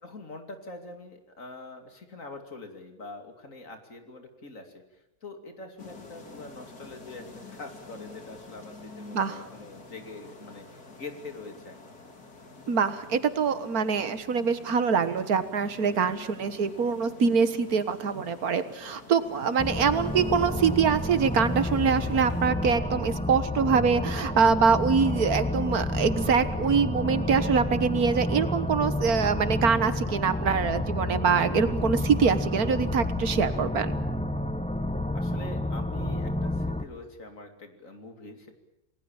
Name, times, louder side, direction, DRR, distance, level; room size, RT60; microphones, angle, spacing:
voice 1, 0.0-12.0 15.8-16.1 26.2-26.4 35.1-38.5, left 2 dB, 60° left, 6 dB, 3.1 m, -44 dB
sound 1, 5.8-22.5, left 3 dB, 80° left, 3.5 m, -48 dB
voice 2, 12.7-34.0, right 6 dB, 75° right, 12 dB, 1.9 m, -24 dB
sound 2, 19.6-36.8, left 1 dB, 5° left, 1.2 m, -30 dB
28.5 x 20.0 x 7.3 m, 0.90 s
omnidirectional pair, 1.6 m